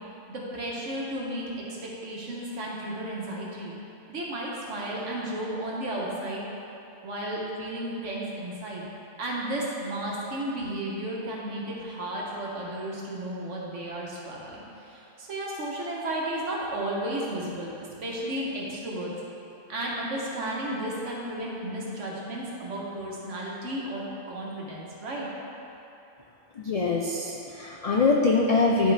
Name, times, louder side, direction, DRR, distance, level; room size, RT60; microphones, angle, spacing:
voice 1, 0.3-1.5 1.8-3.7 4.1-6.5 7.0-8.9 9.2-19.1 19.7-25.3, right 1 dB, 75° right, -4 dB, 1.5 m, -33 dB
voice 2, 26.6-28.9, left 3 dB, 75° left, -1 dB, 0.3 m, -23 dB
11.0 x 4.3 x 3.3 m, 2.9 s
omnidirectional pair, 1.3 m